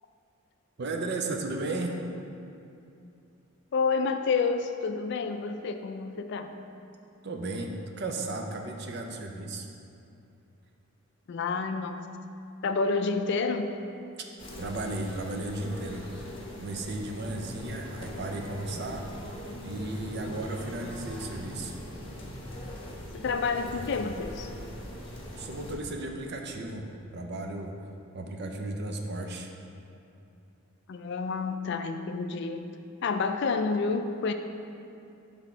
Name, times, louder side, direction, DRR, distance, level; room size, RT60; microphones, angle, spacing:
voice 1, 0.8-1.9 7.2-9.7 14.6-19.1 19.6-21.7 25.4-26.8 27.1-27.7 28.1-29.5, right 2 dB, 50° right, 3 dB, 0.5 m, -35 dB
voice 2, 3.7-6.5 11.3-12.2 12.6-13.8 23.1-24.5 30.9-32.7 33.0-34.3, left 4 dB, 55° left, 7 dB, 0.3 m, -29 dB
sound 1, 14.4-25.7, left 1 dB, 25° left, 0.9 m, -41 dB
5.9 x 3.5 x 5.5 m, 2.7 s
head